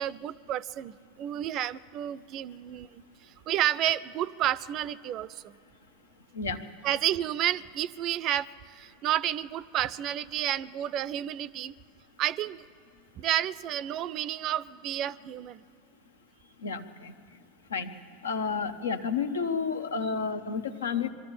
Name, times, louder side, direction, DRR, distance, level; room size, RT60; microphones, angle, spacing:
voice 1, 0.0-3.0 3.5-5.6 6.8-11.7 12.2-12.6 13.2-15.6, right 11 dB, 45° right, 19 dB, 0.4 m, -31 dB
voice 2, 16.6-17.1 17.7-17.9 18.2-21.1, left 5 dB, 80° left, 8 dB, 0.9 m, -31 dB
22.0 x 13.5 x 8.7 m, 2.5 s
figure-of-eight pair, 85°, 0 cm